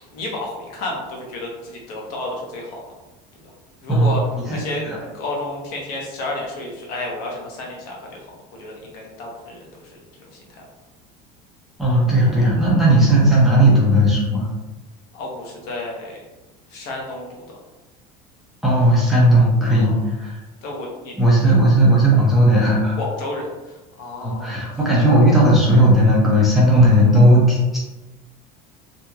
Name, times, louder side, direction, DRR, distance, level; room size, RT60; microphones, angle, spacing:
voice 1, 0.1-2.8 3.4-3.5 3.8-4.2 4.5-4.9 5.1-8.2 8.5-10.0 10.3-10.7 15.1-16.2 16.7-17.6 19.8-20.1 20.6-21.5 23.0-24.6, left 2 dB, 80° left, -1 dB, 0.9 m, -31 dB
voice 2, 11.8-14.5 18.6-20.3 21.2-23.0 24.2-27.8, right 1 dB, ahead, -7 dB, 0.5 m, -15 dB
2.8 x 2.7 x 2.3 m, 1.1 s
cardioid pair, 175°, 19 cm